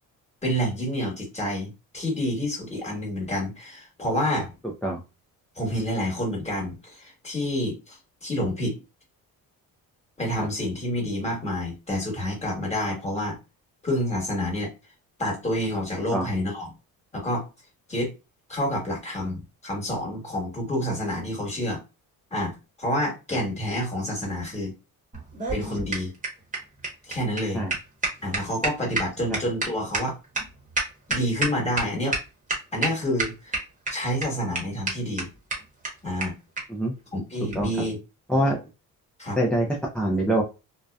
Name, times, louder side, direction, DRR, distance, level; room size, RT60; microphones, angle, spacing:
voice 1, 0.4-4.5 5.6-8.8 10.2-13.4 13.8-14.7 15.2-16.7 17.1-17.4 17.9-18.1 18.5-21.8 22.3-24.7 25.5-26.1 27.1-27.6 28.2-30.2 31.1-32.2 32.7-33.5 33.9-35.3 36.0-36.4 37.1-38.0 39.2-39.4, equal, 20° left, -2 dB, 1.2 m, -28 dB
sound 1, 25.1-31.8 32.1-32.2 32.5-32.9 33.2-33.9 34.2-34.3 34.5-34.6 34.9-35.0 35.2-35.3 35.5-35.6 35.8-35.9 36.2-36.3 36.6-36.7 37.5-37.6, right 3 dB, 20° right, 1.0 m, -27 dB
voice 2, 39.3-40.4, right 1 dB, 5° left, -2 dB, 0.4 m, -24 dB
2.6 x 2.1 x 2.2 m, 0.28 s
cardioid pair, 105°, 36 cm